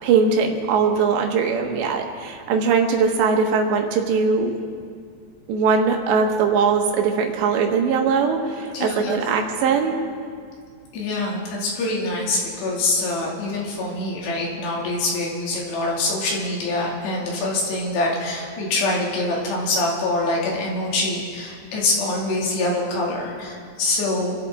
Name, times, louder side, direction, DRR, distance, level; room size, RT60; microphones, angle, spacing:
voice 1, 0.0-4.5 5.5-10.0, right 5 dB, 85° right, 2 dB, 3.6 m, -20 dB
voice 2, 8.7-9.2 10.9-24.3, left 2 dB, 75° left, -3 dB, 4.6 m, -25 dB
27.0 x 12.5 x 3.7 m, 2.2 s
omnidirectional pair, 5.0 m